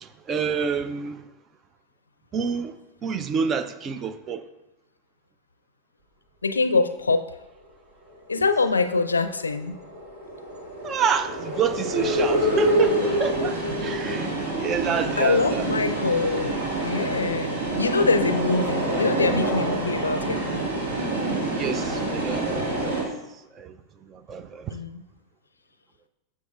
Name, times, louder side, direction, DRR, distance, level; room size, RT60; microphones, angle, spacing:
voice 1, 0.0-1.2 2.3-2.8 3.0-4.4 8.3-8.4 10.8-15.7 21.6-22.9 23.5-23.8 24.1-24.8, right 6 dB, 25° right, 0.5 m, -28 dB
voice 2, 6.4-7.2 8.3-9.8 15.2-20.5 24.7-25.0, left 3 dB, 75° left, 0.5 m, -24 dB
sound 1, 8.9-23.0, right 1 dB, 60° right, 1.8 m, -26 dB
12.0 x 7.2 x 2.4 m
figure-of-eight pair, 90°, 0 cm